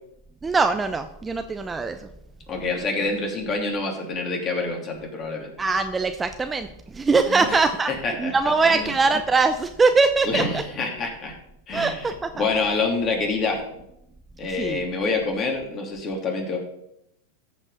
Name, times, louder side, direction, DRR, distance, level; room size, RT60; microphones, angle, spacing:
voice 1, 0.4-2.0 5.6-6.7 6.9-7.9 8.2-10.4 11.7-12.3 14.6-14.8, right 4 dB, 15° right, 8 dB, 0.7 m, -21 dB
voice 2, 2.5-5.5 7.3-7.6 7.9-8.3 8.7-8.9 10.2-11.3 11.7-12.0 12.3-13.6 14.4-16.6, left 3 dB, 35° left, 1 dB, 3.1 m, -26 dB
14.0 x 5.4 x 5.1 m, 0.80 s
hypercardioid pair, 100°, 0 cm